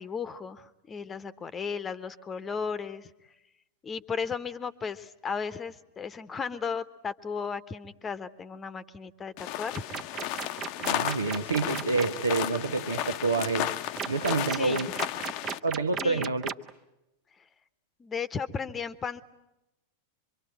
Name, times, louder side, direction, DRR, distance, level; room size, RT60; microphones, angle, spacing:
voice 1, 0.0-3.1 3.8-9.8 14.5-14.8 16.0-16.3 18.0-19.2, left 6 dB, 20° left, 1.1 m, -35 dB
sound 1, 9.4-15.6, left 13 dB, 45° left, 0.9 m, -34 dB
sound 2, 9.7-12.1 14.0-16.7, right 7 dB, 30° right, 1.0 m, -35 dB
voice 2, 10.8-13.8 14.0-14.9 15.6-16.5, right 3 dB, 75° right, 1.4 m, -28 dB
26.0 x 24.0 x 9.0 m
figure-of-eight pair, 90°, 0 cm